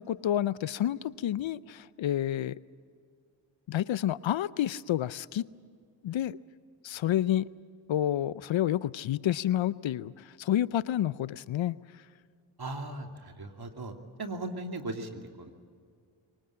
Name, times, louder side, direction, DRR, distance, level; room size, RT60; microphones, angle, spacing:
voice 1, 0.0-2.5 3.7-5.5 6.0-6.4 6.8-7.5 7.9-10.1 10.4-11.7, left 12 dB, 65° left, 19 dB, 0.6 m, -29 dB
voice 2, 12.6-13.9 14.2-15.5, right 2 dB, 50° right, 4 dB, 2.8 m, -38 dB
24.0 x 19.0 x 8.7 m, 2.2 s
cardioid pair, 40°, 49 cm